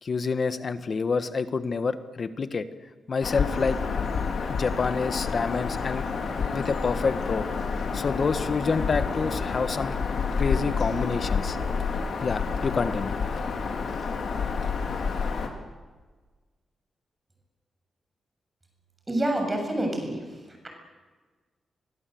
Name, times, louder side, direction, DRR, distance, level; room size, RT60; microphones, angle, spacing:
voice 1, 0.0-2.6 3.1-3.8 4.5-6.1 6.5-7.4 7.9-10.0 10.4-11.6 12.2-13.2, left 5 dB, 40° left, 10 dB, 1.4 m, -28 dB
Bird vocalization bird call bird song, 3.2-15.5, left 5 dB, 65° left, 4.0 m, -29 dB
voice 2, 19.1-20.7, right 1 dB, 20° right, 3 dB, 7.1 m, -28 dB
30.0 x 24.0 x 7.9 m, 1.4 s
wide cardioid pair, 155°, 0 cm